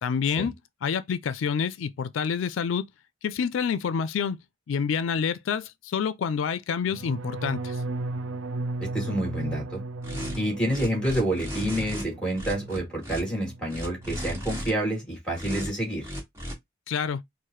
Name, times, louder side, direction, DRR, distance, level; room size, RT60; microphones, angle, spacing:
voice 1, 0.0-0.5 0.8-2.8 3.2-4.4 4.7-7.8 16.9-17.2, left 6 dB, 80° left, 0.4 m, -27 dB
sound 1, 6.9-12.8 13.1-13.6 13.9-14.3, right 2 dB, 80° right, 0.4 m, -35 dB
voice 2, 8.8-9.8 10.4-16.1, right 1 dB, 5° left, 2.3 m, -28 dB
sound 2, 10.0-10.4 10.7-12.0 12.3-13.2 13.7-14.7 15.3-15.7 16.0-16.5, equal, 15° right, 1.4 m, -35 dB
4.6 x 2.1 x 3.0 m
head